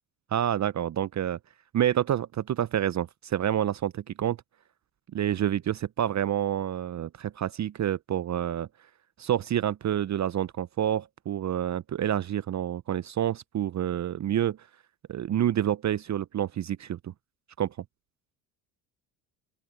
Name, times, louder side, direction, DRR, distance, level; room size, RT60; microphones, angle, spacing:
voice 1, 0.3-1.4 1.7-4.4 5.1-8.7 9.2-14.7 15.1-17.1 17.6-17.8, right 10 dB, 35° right, 0.8 m, -28 dB
open air
hypercardioid pair, 65°, 48 cm